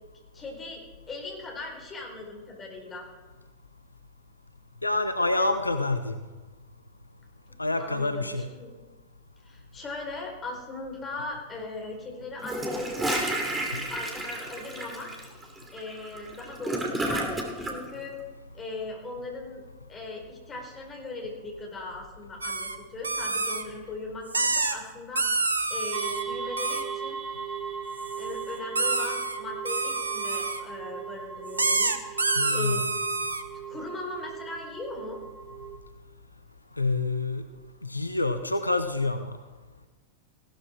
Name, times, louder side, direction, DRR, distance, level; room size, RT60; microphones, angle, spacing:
voice 1, 0.3-0.8 1.1-3.1 7.8-8.7 9.4-15.1 15.4-18.2 18.5-19.6 19.9-27.2 28.2-32.9 33.2-33.3 33.7-35.2, left 2 dB, 20° left, 0 dB, 4.6 m, -39 dB
voice 2, 4.8-6.2 7.6-8.5 13.7-13.8 32.4-32.9 36.8-37.5 37.8-39.3, left 2 dB, 85° left, 9 dB, 0.7 m, -27 dB
Gurgling / Toilet flush, 12.4-17.8, right 1 dB, 10° right, 2.8 m, -31 dB
sound 1, 22.4-22.8 23.0-23.6 24.3-24.8 25.2-26.2 26.6-26.8 28.0-28.3 28.7-29.4 29.6-30.6 31.6-33.4, right 3 dB, 80° right, 1.1 m, -27 dB
sound 2, 25.9-35.8, right 7 dB, 35° right, 1.4 m, -38 dB
16.5 x 12.5 x 4.5 m, 1.2 s
figure-of-eight pair, 90°, 0 cm